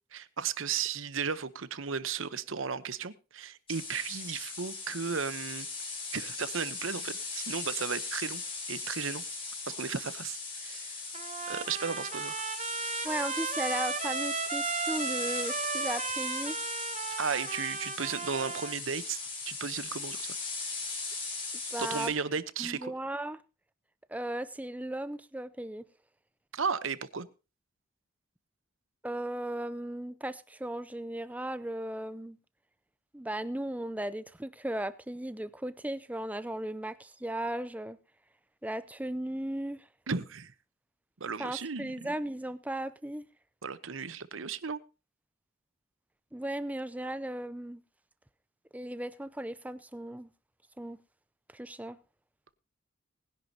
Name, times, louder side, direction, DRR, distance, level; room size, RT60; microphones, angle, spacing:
voice 1, 0.1-5.7 6.1-8.4 8.7-9.2 9.7-10.9 11.5-12.4 17.2-19.2 19.5-20.2 21.8-22.9 26.5-27.3 40.1-40.5 41.2-41.9 43.6-44.8, right 6 dB, 75° right, 0.9 m, -35 dB
sound 1, 3.7-22.1, left 4 dB, 25° left, 3.6 m, -38 dB
Trumpet, 11.1-18.7, right 5 dB, 35° right, 0.9 m, -35 dB
voice 2, 13.0-16.6 21.7-22.1 22.6-23.4 24.1-25.9 29.0-32.4 33.1-38.0 38.6-39.9 41.4-43.3 46.3-47.8 48.7-50.3 50.8-51.0 51.5-52.0, right 1 dB, 5° right, 0.5 m, -36 dB
20.0 x 10.5 x 2.8 m
head